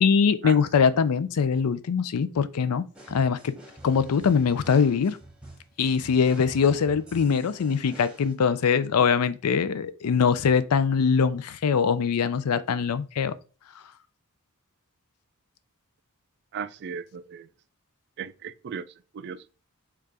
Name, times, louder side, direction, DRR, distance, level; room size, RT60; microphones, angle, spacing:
voice 1, 0.0-3.6 3.8-5.2 5.8-13.3, left 6 dB, 85° left, 0.4 m, -23 dB
sound 1, 2.9-8.3, right 1 dB, 5° right, 0.9 m, -47 dB
voice 2, 16.5-17.5 18.2-18.8 19.1-19.4, right 7 dB, 50° right, 0.3 m, -36 dB
4.7 x 2.4 x 4.7 m
head